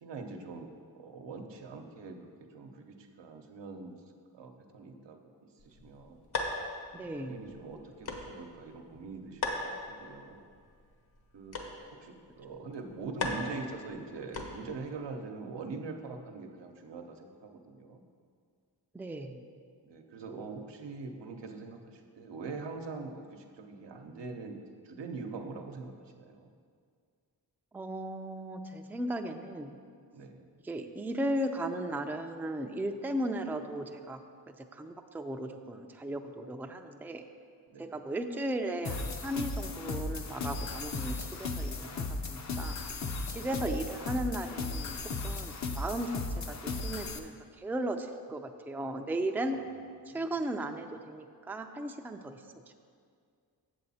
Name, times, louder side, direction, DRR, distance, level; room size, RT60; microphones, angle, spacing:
voice 1, 0.0-0.7 1.0-3.9 4.3-5.2 5.6-6.2 7.2-9.5 9.9-10.5 11.3-11.6 12.0-18.0 19.8-24.6 24.8-26.5 30.1-30.5 37.7-38.0 43.3-43.5 49.5-49.6 50.1-50.2, right 4 dB, 85° right, 3 dB, 0.9 m, -43 dB
sound 1, 5.6-14.9, left 3 dB, 65° left, 1.2 m, -40 dB
voice 2, 6.9-7.4 18.9-19.4 27.7-29.7 30.6-34.2 34.7-37.2 37.8-41.9 42.3-42.8 43.3-45.0 45.2-46.2 46.5-49.6 50.1-52.7, right 1 dB, 5° right, 5 dB, 0.4 m, -36 dB
sound 2, 38.8-47.2, left 3 dB, 40° left, 0.6 m, -36 dB
7.8 x 7.3 x 4.2 m, 2.2 s
cardioid pair, 80°, 42 cm